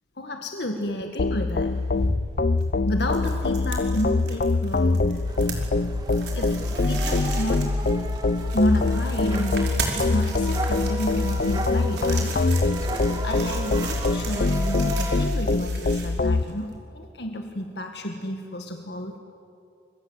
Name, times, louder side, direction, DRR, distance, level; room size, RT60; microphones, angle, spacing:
voice 1, 0.2-1.8 2.9-5.0 6.3-7.8 8.5-19.2, left 1 dB, 70° left, 4 dB, 1.8 m, -31 dB
sound 1, 1.2-16.4, left 3 dB, 50° left, 0.5 m, -24 dB
sound 2, 1.6-16.8, right 3 dB, 75° right, 5.0 m, -37 dB
sound 3, 5.2-15.3, right 1 dB, 20° right, 1.5 m, -35 dB
29.0 x 23.5 x 8.1 m, 2.6 s
head